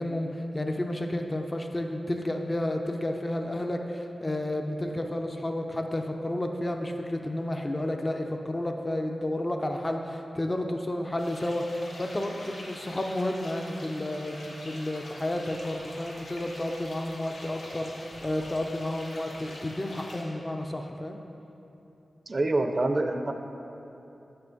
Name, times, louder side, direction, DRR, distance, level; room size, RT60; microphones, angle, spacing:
voice 1, 0.0-21.2, left 1 dB, 25° left, 3 dB, 0.4 m, -31 dB
sound 1, 11.2-20.2, left 1 dB, 85° left, 1.1 m, -44 dB
voice 2, 22.3-23.3, right 2 dB, 40° right, 6 dB, 0.4 m, -26 dB
7.4 x 5.6 x 3.9 m, 2.9 s
wide cardioid pair, 90°, 0 cm